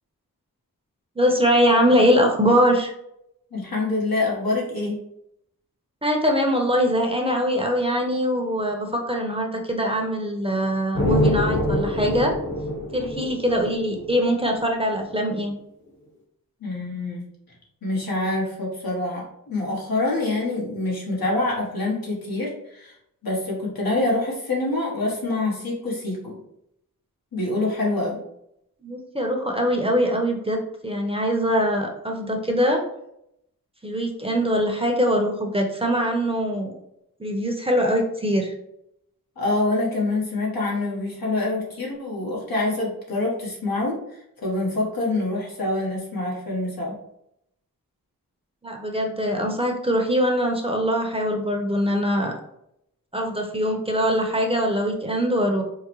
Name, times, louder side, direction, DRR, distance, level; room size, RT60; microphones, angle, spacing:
voice 1, 1.2-2.9 6.0-12.3 12.9-15.5 28.8-32.8 33.8-36.7 37.2-38.5 48.6-52.3 53.1-55.6, equal, 15° right, 2 dB, 0.7 m, -22 dB
voice 2, 3.5-5.0 16.6-17.3 17.8-22.9 23.2-26.4 27.3-28.2 39.4-44.0 44.4-46.9, left 2 dB, 80° left, -4 dB, 1.3 m, -26 dB
sound 1, 10.9-14.7, left 1 dB, 55° left, 1.3 m, -25 dB
4.8 x 2.1 x 3.0 m, 0.78 s
cardioid pair, 40°, 36 cm